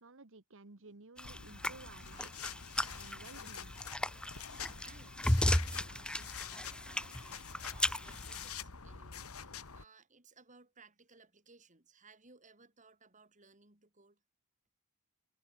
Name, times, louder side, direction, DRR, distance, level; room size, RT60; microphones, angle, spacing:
voice 1, 0.0-3.8, right 3 dB, 65° right, 1.5 m, -55 dB
sound 1, 1.2-9.8, left 7 dB, 85° left, 1.8 m, -47 dB
sound 2, 1.2-8.6, left 1 dB, 5° left, 0.4 m, -35 dB
voice 2, 4.8-14.2, right 4 dB, 35° right, 7.5 m, -62 dB
head